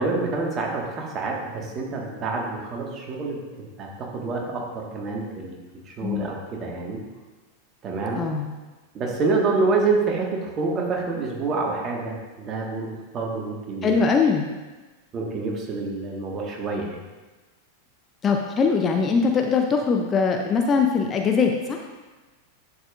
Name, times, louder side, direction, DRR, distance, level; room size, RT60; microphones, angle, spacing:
voice 1, 0.0-5.6 5.8-7.0 7.8-8.2 8.9-14.1 15.1-17.0, right 3 dB, 30° right, -1 dB, 1.7 m, -27 dB
voice 2, 8.2-8.5 13.8-14.5 18.2-21.8, left 5 dB, 25° left, 3 dB, 0.6 m, -21 dB
11.0 x 7.2 x 2.6 m, 1.2 s
figure-of-eight pair, 90°, 0 cm